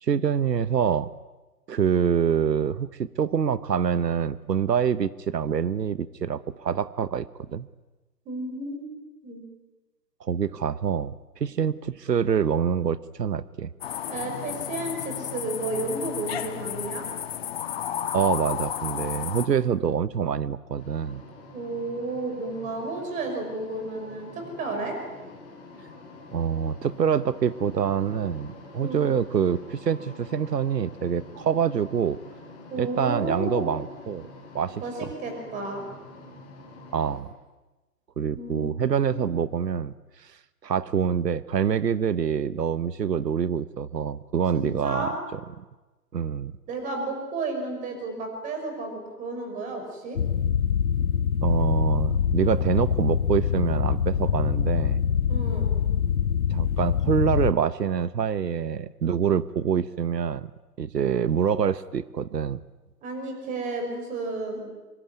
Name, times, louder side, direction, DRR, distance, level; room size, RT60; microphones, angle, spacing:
voice 1, 0.0-1.1 1.7-7.7 10.2-11.1 11.4-13.7 18.1-21.2 26.3-32.2 32.8-34.2 34.5-35.1 36.9-37.3 38.2-39.9 40.2-40.3 40.6-45.1 45.6-45.7 46.1-46.5 51.4-55.0 56.5-60.5 60.8-62.6, right 7 dB, 90° right, 16 dB, 1.1 m, -26 dB
voice 2, 8.3-8.9 9.2-9.4 14.1-17.1 21.5-25.0 28.8-29.0 32.7-33.7 34.8-35.8 38.4-38.7 44.5-45.2 46.7-50.2 55.3-55.7 63.0-64.7, right 2 dB, 15° right, 4 dB, 5.7 m, -32 dB
sound 1, 13.8-19.5, left 9 dB, 40° left, 1.6 m, -32 dB
sound 2, 20.8-37.2, left 2 dB, 10° left, 7.0 m, -46 dB
sound 3, 50.2-57.5, left 8 dB, 60° left, 1.3 m, -24 dB
24.5 x 23.5 x 9.3 m, 1.1 s
hypercardioid pair, 155°, 48 cm